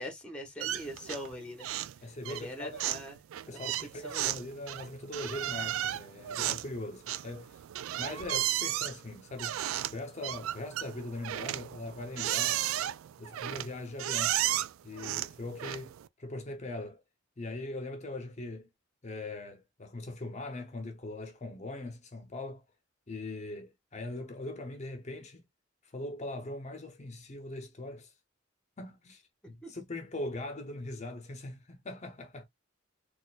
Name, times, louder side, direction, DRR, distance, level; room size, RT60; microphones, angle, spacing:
voice 1, 0.0-3.6 4.0-4.3 29.6-29.7, left 1 dB, 5° left, 1.0 m, -43 dB
sound 1, 0.6-1.3 1.6-2.0 2.2-16.1, right 13 dB, 75° right, 0.3 m, -34 dB
voice 2, 2.0-2.8 3.5-7.6 8.0-9.6 9.9-12.6 13.2-14.4 14.8-15.9 16.2-17.0 17.4-18.7 19.0-22.6 23.1-25.4 25.9-28.1 28.8-32.4, left 2 dB, 35° left, 0.7 m, -41 dB
4.1 x 2.5 x 2.3 m
head